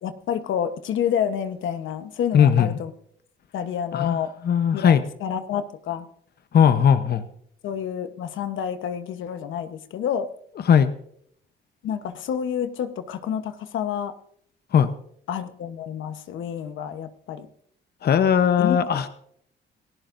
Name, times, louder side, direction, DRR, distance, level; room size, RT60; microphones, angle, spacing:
voice 1, 0.0-2.9 3.5-4.3 4.7-6.1 7.6-10.3 11.8-14.1 15.3-17.5 18.6-19.0, left 8 dB, 80° left, 10 dB, 1.1 m, -29 dB
voice 2, 2.3-2.7 3.9-4.2 4.4-5.0 6.5-7.3 10.7-10.9 14.7-14.9 18.0-19.1, left 8 dB, 55° left, 10 dB, 0.9 m, -18 dB
28.5 x 15.0 x 2.6 m, 0.69 s
cardioid pair, 90°, 20 cm